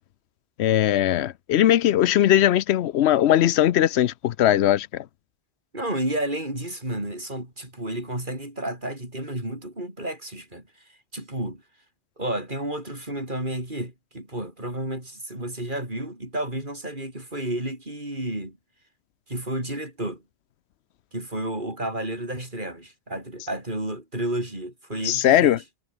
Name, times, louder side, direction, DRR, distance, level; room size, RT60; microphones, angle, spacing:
voice 1, 0.6-5.0 25.0-25.6, left 12 dB, 90° left, 0.9 m, -19 dB
voice 2, 5.7-10.6 11.1-11.6 12.2-18.6 19.3-20.2 21.1-25.6, right 1 dB, 50° right, 6.7 m, -31 dB
omnidirectional pair, 1.1 m